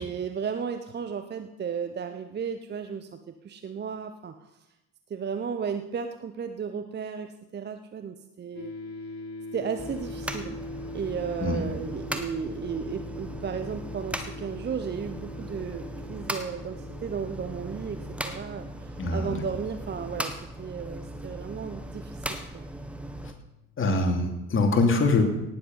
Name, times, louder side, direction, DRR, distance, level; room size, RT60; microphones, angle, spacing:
voice 1, 0.0-4.6 5.1-8.7 9.5-10.6 10.9-22.7, right 6 dB, 25° right, 8 dB, 0.9 m, -34 dB
sound 1, 8.5-23.8, left 3 dB, 65° left, 2.0 m, -43 dB
sound 2, 9.8-23.3, right 1 dB, 5° right, 1.4 m, -38 dB
voice 2, 19.0-19.4 23.8-25.2, left 3 dB, 35° left, 3 dB, 2.9 m, -23 dB
18.0 x 7.9 x 5.5 m, 0.92 s
figure-of-eight pair, 60°, 38 cm